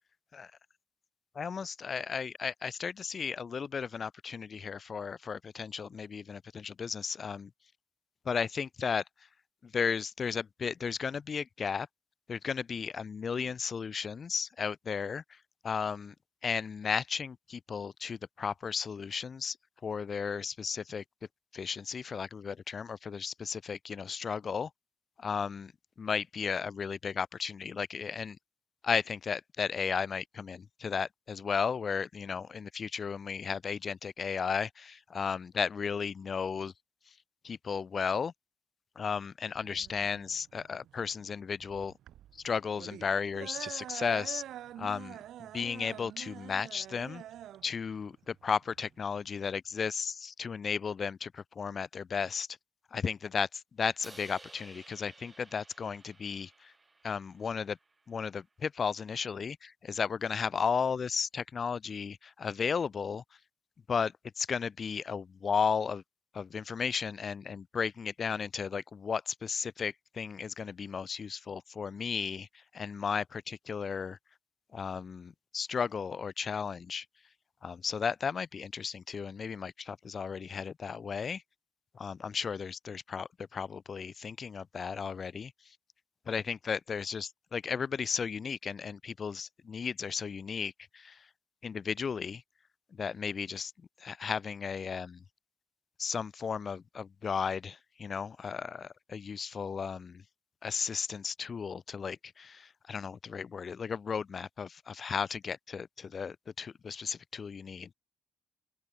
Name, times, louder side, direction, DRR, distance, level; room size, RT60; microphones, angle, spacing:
voice 1, 1.3-7.5 8.2-9.3 9.6-11.9 12.3-16.1 16.4-19.6 19.8-21.0 21.5-24.7 25.2-25.7 26.0-28.4 28.8-36.7 37.1-37.2 37.4-38.3 38.9-41.9 42.3-44.4 44.8-45.2 45.5-47.2 47.6-52.5 52.9-56.7 57.0-57.8 58.1-63.2 63.9-66.0 66.3-74.2 74.7-77.0 77.6-81.4 81.9-85.8 86.2-91.3 91.6-92.4 92.9-93.7 94.0-95.2 96.0-100.2 100.6-107.9, left 6 dB, 45° left, 1.4 m, -34 dB
sound 1, 39.5-49.6, right 12 dB, 75° right, 1.3 m, -46 dB
Crash cymbal, 54.0-58.2, right 3 dB, 25° right, 4.4 m, -56 dB
open air
cardioid pair, 90°, 0 cm